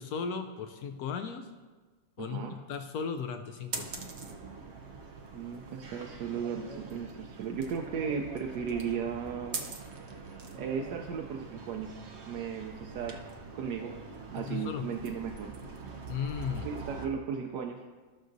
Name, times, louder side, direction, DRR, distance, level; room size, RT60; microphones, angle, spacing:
voice 1, 0.0-1.5 2.2-4.0 14.4-14.9 16.1-16.7, left 6 dB, 75° left, 7 dB, 0.8 m, -36 dB
voice 2, 2.2-2.6 5.3-9.6 10.0-10.2 10.6-12.0 12.3-13.9 14.3-15.5 16.6-17.8, right 6 dB, 70° right, 1 dB, 1.1 m, -36 dB
sound 1, 3.7-17.1, right 4 dB, 85° right, 0.5 m, -43 dB
15.5 x 6.2 x 2.6 m, 1.4 s
omnidirectional pair, 2.1 m